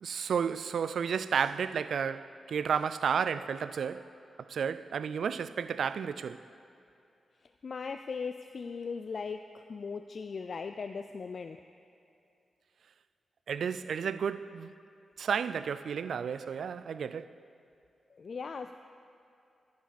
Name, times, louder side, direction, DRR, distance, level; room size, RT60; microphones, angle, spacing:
voice 1, 0.0-4.0 4.5-6.4 13.5-14.7 15.2-17.3, right 7 dB, 75° right, 0.3 m, -32 dB
voice 2, 7.6-11.6 18.1-18.7, left 5 dB, 50° left, 0.3 m, -38 dB
14.5 x 9.5 x 4.1 m
wide cardioid pair, 105°, 0 cm